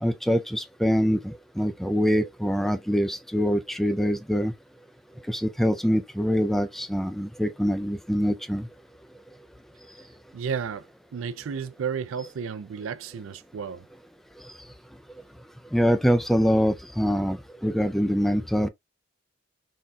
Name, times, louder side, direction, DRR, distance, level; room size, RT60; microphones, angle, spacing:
voice 1, 0.0-4.5 5.3-8.7 15.7-18.7, equal, ahead, 0.3 m, -24 dB
voice 2, 10.3-10.9 11.1-13.9, right 6 dB, 75° right, 0.4 m, -32 dB
4.0 x 3.6 x 2.2 m
head